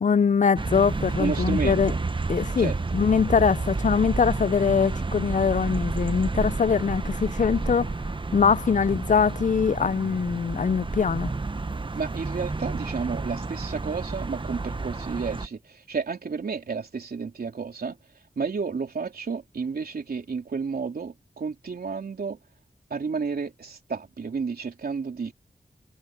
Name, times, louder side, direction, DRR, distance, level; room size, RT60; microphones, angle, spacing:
voice 1, 0.0-1.9 2.3-7.9 8.3-11.3, left 6 dB, 55° left, 0.5 m, -23 dB
sound 1, 0.6-15.5, right 3 dB, 35° right, 0.8 m, -30 dB
voice 2, 1.2-2.0 2.6-2.8 11.9-18.0 18.4-22.4 22.9-25.3, right 5 dB, 85° right, 3.5 m, -31 dB
wide cardioid pair, 75°, 15 cm